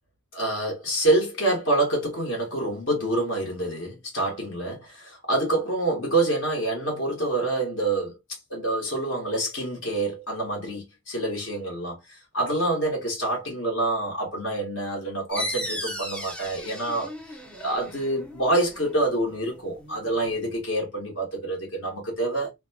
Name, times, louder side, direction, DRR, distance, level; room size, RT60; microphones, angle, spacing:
voice 1, 0.3-8.1 8.5-22.5, right 2 dB, 55° left, 1.2 m, -27 dB
sound 1, 15.3-20.6, equal, 5° left, 0.4 m, -37 dB
2.8 x 2.2 x 2.6 m
head